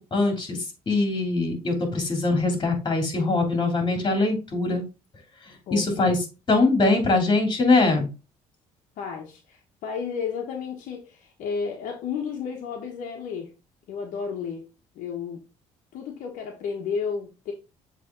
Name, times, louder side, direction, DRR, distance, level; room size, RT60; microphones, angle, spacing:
voice 1, 0.0-4.8 5.5-6.2 6.5-8.1, left 3 dB, 35° left, 3 dB, 3.1 m, -22 dB
voice 2, 5.7-6.1 9.0-13.5 13.9-14.6 14.9-15.4 15.9-17.5, left 6 dB, 70° left, 2 dB, 1.2 m, -32 dB
7.4 x 3.4 x 3.8 m, 0.30 s
supercardioid pair, 70°, 14 cm